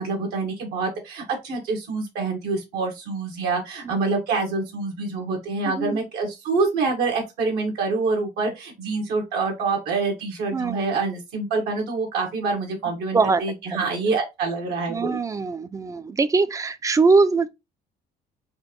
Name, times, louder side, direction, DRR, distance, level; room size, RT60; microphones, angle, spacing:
voice 1, 0.0-15.2, right 4 dB, 80° right, 1.4 m, -26 dB
voice 2, 5.6-6.0 10.5-10.8 13.1-13.4 14.9-17.5, right 4 dB, 20° right, 0.4 m, -22 dB
4.3 x 2.6 x 3.0 m
cardioid pair, 110°, 17 cm